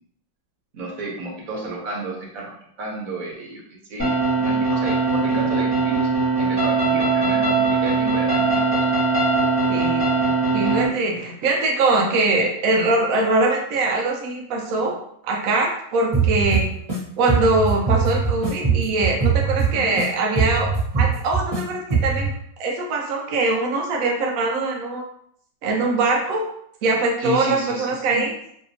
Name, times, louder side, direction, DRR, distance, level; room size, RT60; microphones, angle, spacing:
voice 1, 0.7-3.6 3.9-6.1 6.4-8.9 19.7-19.9 27.2-28.2, right 1 dB, 55° right, -2 dB, 1.0 m, -32 dB
sound 1, 4.0-10.9, right 3 dB, 10° left, 1.0 m, -20 dB
voice 2, 9.7-15.0 15.2-16.7 17.2-22.3 22.6-25.1 25.6-26.5 26.8-28.3, right 3 dB, 90° right, 0 dB, 0.7 m, -22 dB
sound 2, 16.1-17.0 17.3-20.1 20.4-21.6 21.9-22.3, right 5 dB, 25° right, 1.1 m, -21 dB
3.2 x 2.7 x 2.7 m, 0.69 s
omnidirectional pair, 2.1 m